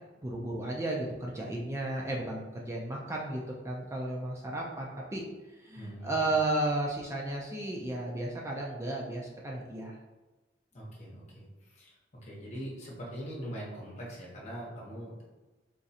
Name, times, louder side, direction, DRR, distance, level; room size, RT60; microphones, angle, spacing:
voice 1, 0.2-10.0, right 2 dB, 15° right, -2 dB, 0.4 m, -34 dB
voice 2, 5.8-6.3 10.7-15.2, equal, 40° left, -4 dB, 1.1 m, -42 dB
3.7 x 3.1 x 2.8 m, 1.1 s
head